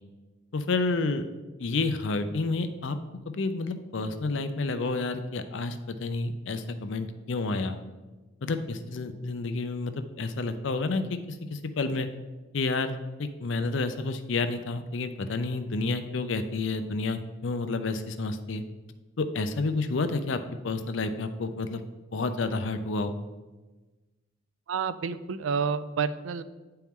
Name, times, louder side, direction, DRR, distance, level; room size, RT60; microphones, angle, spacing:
voice 1, 0.5-1.2 1.6-3.0 3.3-7.8 8.4-11.2 11.5-12.1 12.5-18.6 19.2-20.4 20.6-21.8 22.1-23.1, left 3 dB, 70° left, 9 dB, 0.5 m, -30 dB
voice 2, 24.7-26.4, right 6 dB, 80° right, 13 dB, 0.4 m, -29 dB
9.3 x 4.4 x 3.6 m, 1.2 s
head